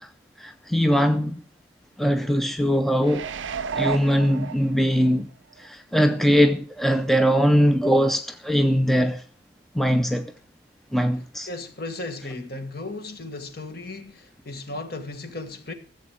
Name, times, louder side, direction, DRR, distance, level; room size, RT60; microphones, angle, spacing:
voice 1, 0.4-1.4 2.0-3.3 3.8-5.3 5.6-9.2 9.8-10.3 10.9-11.5, equal, ahead, 0.5 m, -21 dB
sound 1, 3.0-5.1 5.6-5.7, right 6 dB, 80° right, 0.6 m, -31 dB
voice 2, 11.5-15.7, left 2 dB, 50° left, 1.6 m, -35 dB
15.0 x 7.8 x 6.1 m
head